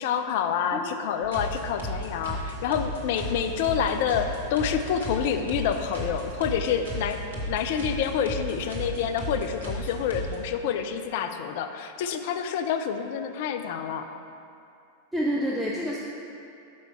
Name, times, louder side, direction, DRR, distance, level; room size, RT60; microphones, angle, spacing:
voice 1, 0.0-7.2 7.5-14.1, left 7 dB, 50° left, 7 dB, 0.4 m, -28 dB
sound 1, 1.2-10.4, equal, 65° right, 1.3 m, -34 dB
voice 2, 15.1-16.0, equal, 5° right, -5 dB, 0.6 m, -28 dB
6.3 x 5.2 x 4.4 m, 2.5 s
figure-of-eight pair, 90°, 0 cm